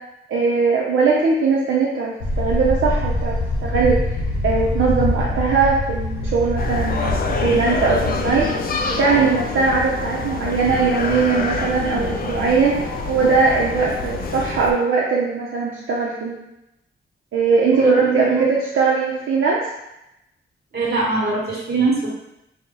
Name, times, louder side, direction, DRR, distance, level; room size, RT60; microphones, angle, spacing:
voice 1, 0.3-4.0 4.4-8.5 9.0-12.8 13.1-16.4 17.3-19.6, right 4 dB, 75° right, -4 dB, 0.6 m, -20 dB
sound 1, 2.2-8.4, left 1 dB, 85° left, 0.7 m, -24 dB
sound 2, 6.6-14.7, left 3 dB, 45° left, 0.4 m, -26 dB
voice 2, 17.7-18.4 20.7-22.1, right 3 dB, 50° right, -4 dB, 1.2 m, -22 dB
4.1 x 2.1 x 3.7 m, 0.88 s
wide cardioid pair, 175°, 21 cm